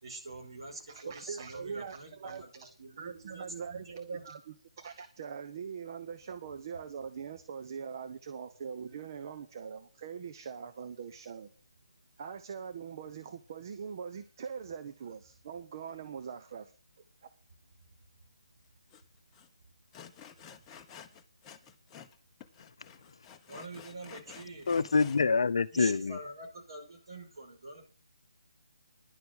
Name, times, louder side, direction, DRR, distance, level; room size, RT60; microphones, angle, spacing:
voice 1, 0.0-4.2 23.5-24.7 25.7-27.8, right 2 dB, 60° right, 5.1 m, -45 dB
voice 2, 0.9-2.7 3.0-11.5 12.2-16.7 17.2-17.3, right 6 dB, 40° right, 0.9 m, -42 dB
Sawing, 18.9-19.0 19.3-19.5 19.9-22.2 22.4-25.2, left 8 dB, 15° left, 0.9 m, -51 dB
voice 3, 24.7-26.2, left 4 dB, 60° left, 0.7 m, -26 dB
11.0 x 6.8 x 8.0 m
figure-of-eight pair, 150°, 3 cm